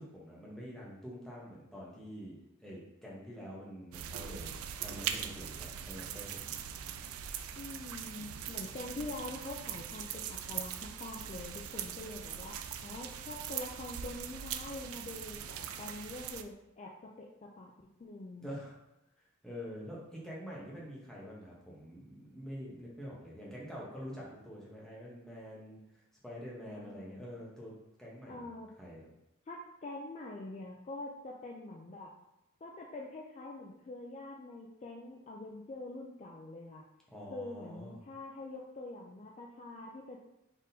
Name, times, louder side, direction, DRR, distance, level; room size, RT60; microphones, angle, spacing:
voice 1, 0.0-6.6 18.4-18.8 19.2-28.5 28.8-29.1 37.1-38.0, equal, 5° left, -6 dB, 0.9 m, -46 dB
sound 1, 3.9-16.4, right 9 dB, 80° right, 0.3 m, -41 dB
voice 2, 7.6-12.6 12.8-16.9 17.2-17.7 18.0-18.5 26.7-27.3 28.3-28.7 29.5-32.1 32.6-36.8 37.3-40.2, left 2 dB, 30° left, -1 dB, 0.3 m, -45 dB
4.0 x 3.5 x 2.7 m, 0.89 s
head